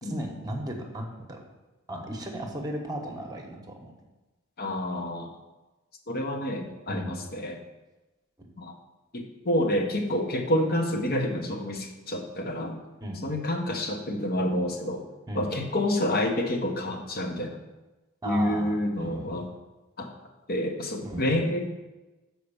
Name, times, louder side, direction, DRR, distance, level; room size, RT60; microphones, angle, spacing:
voice 1, 0.0-1.4 1.9-3.9 6.9-7.1 8.4-8.5 13.0-13.2 15.3-15.5 18.2-19.4 21.0-21.3, right 1 dB, 15° right, 2 dB, 1.1 m, -36 dB
voice 2, 4.6-5.3 6.1-7.6 8.6-8.7 9.1-12.8 13.2-15.1 15.3-17.6 18.2-19.5 20.0-20.1 20.5-21.7, left 1 dB, 45° left, 4 dB, 1.0 m, -28 dB
6.5 x 4.7 x 6.8 m, 1.1 s
head